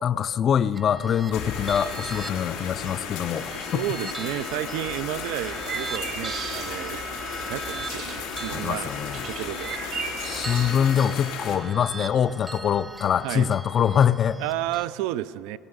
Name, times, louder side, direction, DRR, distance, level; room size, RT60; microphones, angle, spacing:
voice 1, 0.0-3.8 8.5-9.3 10.2-14.4, left 8 dB, 35° left, 16 dB, 0.4 m, -24 dB
sound 1, 0.7-14.9, right 3 dB, 15° right, 0.6 m, -39 dB
sound 2, 1.3-11.6, left 7 dB, 80° left, 2.9 m, -35 dB
voice 2, 3.5-8.9 9.3-9.8 13.2-13.5 14.4-15.6, right 15 dB, 80° right, 17 dB, 0.4 m, -32 dB
sound 3, 4.8-10.7, right 6 dB, 50° right, 1.0 m, -37 dB
18.0 x 9.4 x 7.9 m, 2.4 s
cardioid pair, 135°, 0 cm